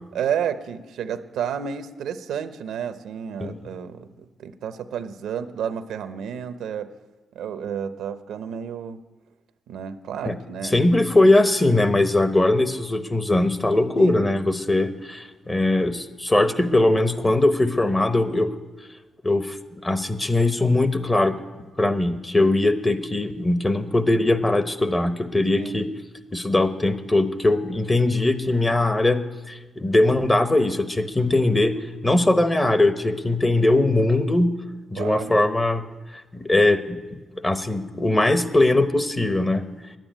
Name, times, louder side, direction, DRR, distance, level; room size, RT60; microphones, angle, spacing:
voice 1, 0.1-6.9 7.3-9.0 9.7-10.8 14.0-14.2 25.6-25.8 35.0-35.3, right 8 dB, 85° right, 11 dB, 0.7 m, -31 dB
voice 2, 10.7-18.5 19.2-19.6 19.8-21.3 21.8-25.9 26.3-34.6 34.9-35.8 36.3-39.6, left 2 dB, 20° left, 10 dB, 1.0 m, -20 dB
11.0 x 9.0 x 9.1 m, 1.2 s
cardioid pair, 80°, 0 cm